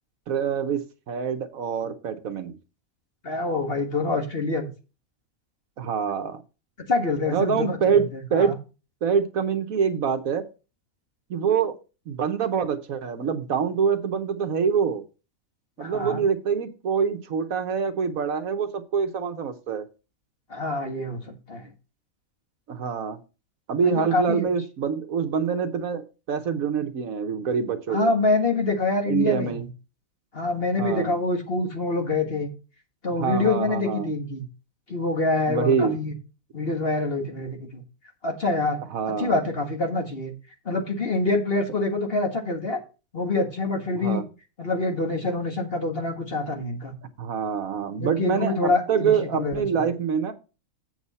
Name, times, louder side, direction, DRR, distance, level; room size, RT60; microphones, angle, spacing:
voice 1, 0.3-2.5 5.8-6.4 7.3-8.6 9.0-10.5 11.3-11.7 12.1-15.0 15.8-19.9 22.7-23.2 23.7-28.1 29.1-29.7 30.8-31.1 33.2-34.1 35.5-36.0 38.9-39.4 43.9-44.2 47.2-50.3, right 6 dB, 75° right, 7 dB, 1.4 m, -25 dB
voice 2, 3.2-4.7 6.9-8.0 8.3-8.6 15.8-16.2 20.5-21.7 23.8-24.5 27.9-29.5 30.3-32.5 33.0-34.5 34.9-36.1 36.5-37.8 38.2-38.8 39.2-40.3 40.7-42.8 43.1-44.2 44.6-46.9 48.0-49.8, left 2 dB, 40° left, 3 dB, 1.8 m, -26 dB
7.8 x 7.4 x 4.2 m, 0.32 s
omnidirectional pair, 1.5 m